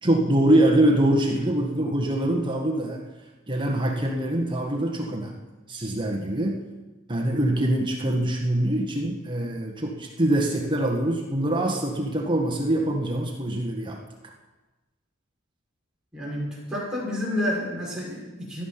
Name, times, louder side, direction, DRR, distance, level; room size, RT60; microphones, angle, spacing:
voice 1, 0.0-3.1 3.5-5.3 5.7-6.6 7.1-14.0, right 1 dB, 25° right, 1 dB, 1.7 m, -24 dB
voice 2, 16.1-18.6, left 1 dB, 5° right, -6 dB, 6.3 m, -29 dB
16.5 x 13.0 x 6.0 m, 1.1 s
head